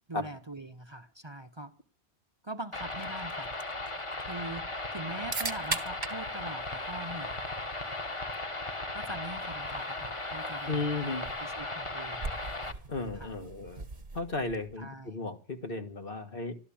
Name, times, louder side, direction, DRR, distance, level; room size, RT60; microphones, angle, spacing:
voice 1, 0.1-1.7 2.4-3.5 4.2-7.4 8.9-10.9 11.4-12.3 13.1-13.3 14.8-15.2, right 1 dB, 30° right, 0.8 m, -42 dB
sound 1, 2.7-12.7, left 2 dB, 30° left, 1.4 m, -37 dB
sound 2, 2.9-14.8, right 3 dB, 45° right, 1.5 m, -43 dB
voice 2, 10.7-11.3 12.9-13.8 14.1-16.5, left 3 dB, 60° left, 1.9 m, -34 dB
13.0 x 13.0 x 8.7 m
omnidirectional pair, 1.1 m